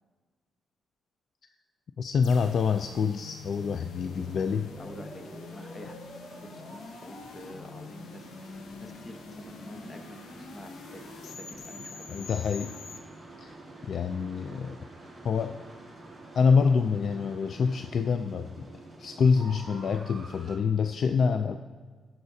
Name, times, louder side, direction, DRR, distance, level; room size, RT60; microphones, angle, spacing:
voice 1, 2.0-4.7 12.1-12.7 13.4-13.5 13.8-14.8 15.2-15.6 16.3-18.7 19.0-21.6, left 5 dB, 60° left, 8 dB, 0.3 m, -26 dB
sound 1, 2.2-13.0, left 5 dB, 80° left, 0.7 m, -46 dB
sound 2, 4.0-20.6, right 2 dB, ahead, 2.4 m, -48 dB
voice 2, 4.8-12.4, left 1 dB, 30° left, 6 dB, 1.1 m, -47 dB
18.0 x 6.1 x 2.7 m, 1.5 s
cardioid pair, 95°, 0 cm